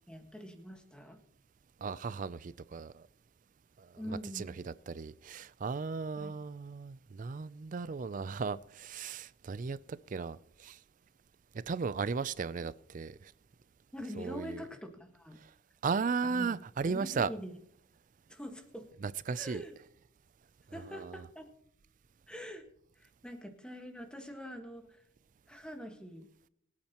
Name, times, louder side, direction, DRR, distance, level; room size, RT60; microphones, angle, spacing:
voice 1, 0.1-1.2 4.0-4.5 6.2-6.3 13.9-15.4 16.2-16.5 16.8-17.6 18.3-18.9 19.3-19.7 20.7-21.4 22.3-22.7 22.9-25.0 25.5-26.3, equal, 5° left, 1.5 m, -44 dB
voice 2, 1.8-3.1 3.8-4.0 4.3-4.5 4.9-10.8 11.5-13.3 14.2-14.6 15.4-15.5 15.8-17.3 19.0-19.6 20.9-21.2, right 5 dB, 40° right, 0.4 m, -36 dB
23.5 x 8.7 x 2.9 m
head